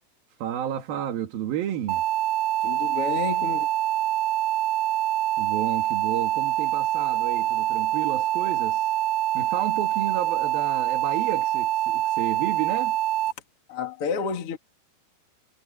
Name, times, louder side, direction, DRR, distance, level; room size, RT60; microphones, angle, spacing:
voice 1, 0.4-2.0 5.4-8.9 9.3-13.0, right 11 dB, 65° right, 3.5 m, -31 dB
sound 1, 1.9-13.3, right 14 dB, 80° right, 2.4 m, -25 dB
voice 2, 2.6-3.7 13.7-14.6, left 6 dB, 45° left, 2.0 m, -30 dB
omnidirectional pair, 4.8 m